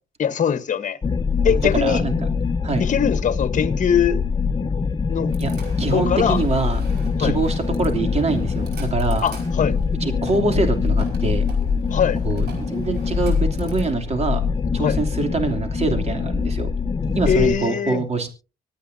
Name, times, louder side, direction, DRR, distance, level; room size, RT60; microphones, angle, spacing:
voice 1, 0.2-1.0 1.4-2.0 2.8-4.2 5.1-5.3 5.9-6.4 7.2-7.3 9.2-9.7 11.9-12.2 14.8-15.0 17.3-18.0, left 8 dB, 50° left, 1.2 m, -21 dB
sound 1, 1.0-17.6, left 5 dB, 25° left, 0.8 m, -23 dB
voice 2, 1.5-2.1 2.6-2.9 5.4-6.8 7.2-9.3 10.0-11.5 12.2-14.4 14.7-16.7 17.1-18.3, right 3 dB, 40° right, 2.9 m, -24 dB
sound 2, 5.3-13.8, right 4 dB, 80° right, 4.9 m, -42 dB
25.0 x 9.2 x 2.7 m
cardioid pair, 80°, 17 cm